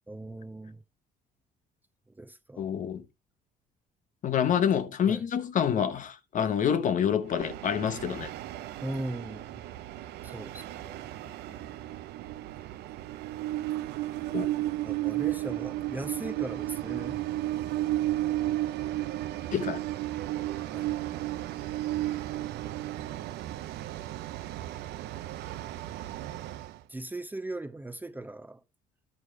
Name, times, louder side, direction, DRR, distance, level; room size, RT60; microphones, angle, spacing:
voice 1, 0.1-0.8 2.1-2.7 5.1-5.2 8.8-9.6 10.2-11.8 14.8-17.2 20.7-20.9 26.9-28.6, right 2 dB, 10° right, 0.7 m, -39 dB
voice 2, 2.6-3.1 4.2-8.3 14.3-14.5 19.5-19.8, left 8 dB, 50° left, 1.1 m, -27 dB
Train, 7.3-26.8, right 15 dB, 80° right, 0.7 m, -34 dB
11.5 x 4.9 x 4.7 m
cardioid pair, 110°, 17 cm